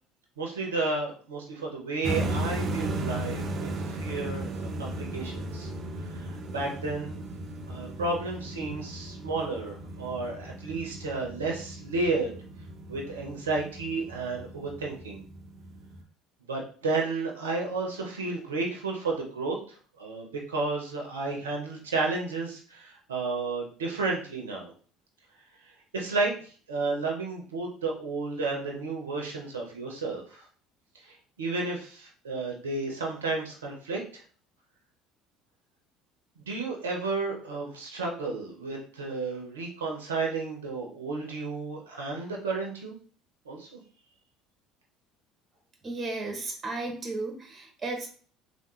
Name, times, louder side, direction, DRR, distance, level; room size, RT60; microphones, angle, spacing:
voice 1, 0.4-5.7 6.1-7.2 7.7-12.3 12.9-15.2 16.5-19.6 20.0-24.7 25.9-30.5 31.0-34.2 36.4-42.9 43.5-43.8, right 3 dB, 90° right, 0 dB, 0.6 m, -32 dB
sound 1, 2.0-16.0, right 1 dB, 45° right, 0.5 m, -36 dB
voice 2, 45.8-48.1, right 2 dB, 30° right, 3 dB, 0.9 m, -34 dB
3.4 x 2.2 x 3.0 m, 0.42 s
hypercardioid pair, 65°, 0 cm